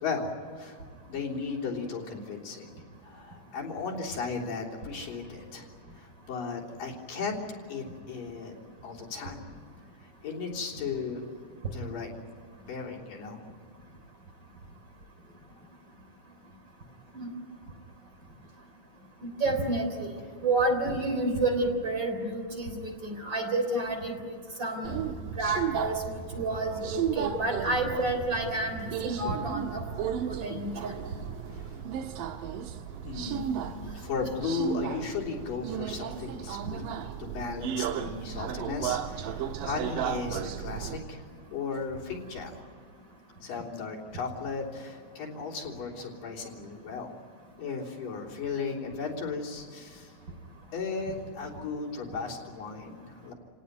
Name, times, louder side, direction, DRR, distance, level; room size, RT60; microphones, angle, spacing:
voice 1, 0.0-0.8 1.1-2.7 3.0-5.7 6.0-7.4 7.7-8.5 8.8-9.5 10.0-11.2 11.7-12.1 12.7-13.4 31.5-31.8 33.1-36.9 37.2-41.2 41.5-42.6 43.4-47.1 47.6-50.1 50.7-53.3, left 4 dB, 90° left, -2 dB, 5.2 m, -36 dB
voice 2, 19.2-20.1 20.4-24.3 24.6-25.0 25.4-30.9, right 2 dB, 35° right, 3 dB, 4.2 m, -30 dB
Subway metro underground, 24.8-41.0, right 9 dB, 90° right, 2.7 m, -35 dB
29.5 x 18.0 x 9.6 m, 2.1 s
omnidirectional pair, 3.8 m